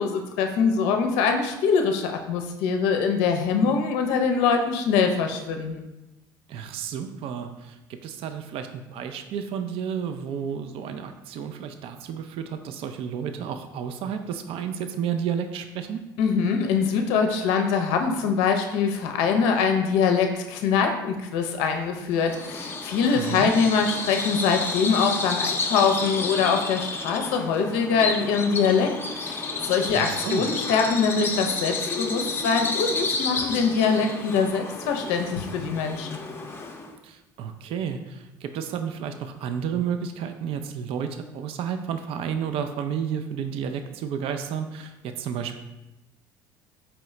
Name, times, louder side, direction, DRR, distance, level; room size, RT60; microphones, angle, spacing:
voice 1, 0.0-5.8 16.2-28.9 29.2-36.2, left 5 dB, 70° left, 4 dB, 0.5 m, -23 dB
voice 2, 6.5-16.0 23.1-23.5 29.9-30.5 37.0-45.6, right 8 dB, 55° right, 7 dB, 0.4 m, -31 dB
Bird vocalization bird call bird song, 22.1-36.9, left 3 dB, 20° left, 0.6 m, -31 dB
4.6 x 2.9 x 3.1 m, 0.97 s
hypercardioid pair, 65°, 11 cm